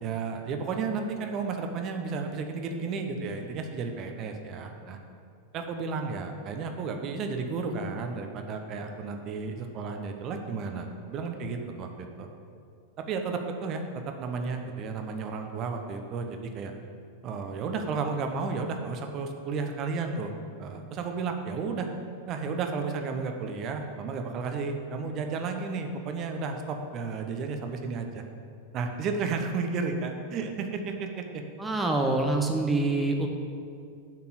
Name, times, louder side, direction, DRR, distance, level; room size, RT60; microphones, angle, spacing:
voice 1, 0.0-5.0 5.5-12.3 13.0-13.8 14.2-16.7 17.2-20.3 20.6-21.9 22.3-28.2 28.7-31.4 32.0-32.1, right 4 dB, 35° right, 5 dB, 0.9 m, -33 dB
voice 2, 31.6-33.3, right 2 dB, 10° right, 2 dB, 0.8 m, -25 dB
7.5 x 5.9 x 7.4 m, 2.4 s
figure-of-eight pair, 90°, 0 cm